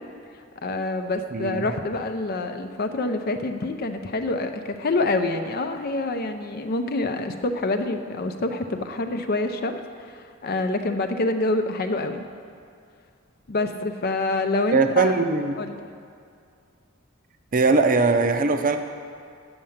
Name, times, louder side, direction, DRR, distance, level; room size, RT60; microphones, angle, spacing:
voice 1, 0.6-12.2 13.5-15.2 15.6-15.8, left 2 dB, 50° left, 7 dB, 0.6 m, -26 dB
voice 2, 1.3-1.7 14.7-15.6 17.5-18.8, right 4 dB, 40° right, 7 dB, 0.6 m, -20 dB
8.8 x 6.6 x 7.2 m, 2.4 s
head